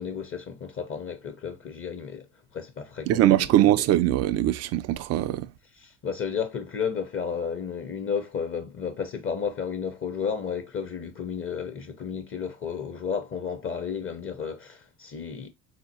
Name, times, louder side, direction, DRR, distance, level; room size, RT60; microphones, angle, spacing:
voice 1, 0.0-3.8 5.8-15.5, left 6 dB, 30° left, 0.7 m, -33 dB
voice 2, 3.1-5.5, right 13 dB, 40° right, 0.4 m, -21 dB
3.7 x 2.8 x 2.7 m
hypercardioid pair, 75°, 44 cm